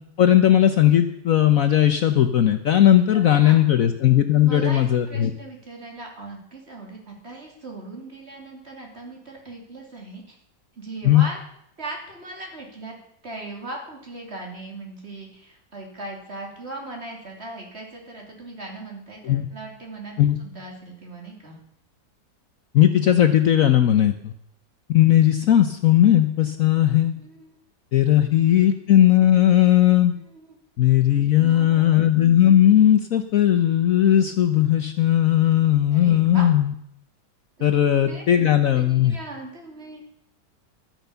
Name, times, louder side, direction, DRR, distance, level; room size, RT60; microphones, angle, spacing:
voice 1, 0.2-5.3 11.0-11.2 19.2-19.5 20.2-20.4 22.7-24.3 24.9-27.1 27.9-30.1 30.8-36.7 37.6-39.2, left 11 dB, 60° left, 9 dB, 1.0 m, -17 dB
voice 2, 3.1-3.6 4.4-10.4 10.8-11.4 11.8-21.6 26.6-27.6 28.1-28.5 30.2-30.5 31.2-32.0 35.9-36.5 37.6-37.7 38.0-38.2 38.7-40.0, right 2 dB, 35° right, 0 dB, 3.1 m, -39 dB
12.0 x 10.5 x 6.8 m, 0.75 s
omnidirectional pair, 1.9 m